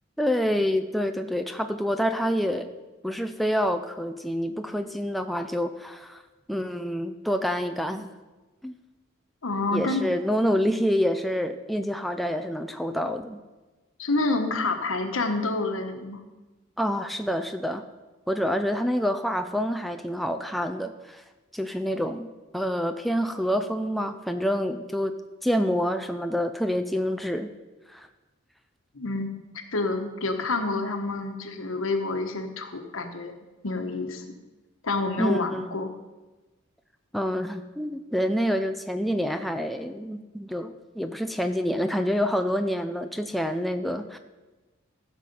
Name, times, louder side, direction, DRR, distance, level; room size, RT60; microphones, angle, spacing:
voice 1, 0.2-2.7 3.0-6.2 6.5-8.1 8.6-8.7 9.7-13.4 16.8-17.8 18.3-21.2 21.5-22.3 22.5-25.1 25.4-27.5 27.9-28.1 35.2-35.7 37.1-44.2, equal, ahead, 6 dB, 0.5 m, -27 dB
voice 2, 9.4-10.0 14.0-16.2 28.9-29.3 29.7-34.2 34.8-35.9, left 3 dB, 85° left, 6 dB, 1.3 m, -28 dB
15.5 x 6.5 x 5.4 m, 1.2 s
head